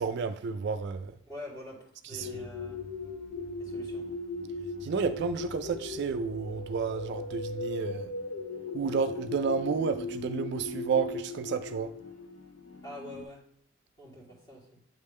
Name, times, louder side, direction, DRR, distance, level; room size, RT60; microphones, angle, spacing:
voice 1, 0.0-1.1 2.2-2.3 4.8-8.1 8.7-11.9, right 5 dB, 55° right, 0.3 m, -31 dB
voice 2, 1.3-2.8 3.6-4.0 12.8-13.4 14.0-14.8, left 1 dB, 20° left, 1.9 m, -45 dB
sound 1, 2.2-13.2, left 2 dB, 75° left, 0.6 m, -38 dB
8.7 x 3.2 x 3.5 m
head